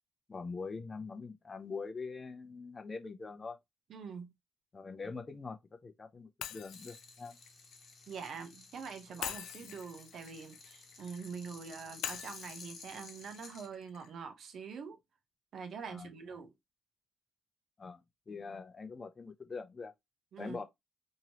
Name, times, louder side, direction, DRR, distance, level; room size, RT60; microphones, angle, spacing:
voice 1, 0.3-3.6 4.7-7.3 9.6-9.7 15.9-16.1 17.8-18.0 18.3-19.9 20.4-20.6, left 4 dB, 30° left, 0.6 m, -43 dB
voice 2, 3.9-4.3 8.1-15.0 15.5-16.5 20.3-20.6, right 6 dB, 65° right, 0.7 m, -45 dB
Shatter, 6.4-8.5 9.2-11.3 12.0-14.1, left 11 dB, 85° left, 0.3 m, -45 dB
sound 1, 6.7-13.7, left 4 dB, 55° left, 1.1 m, -54 dB
3.0 x 2.7 x 2.8 m
cardioid pair, 90°, 0 cm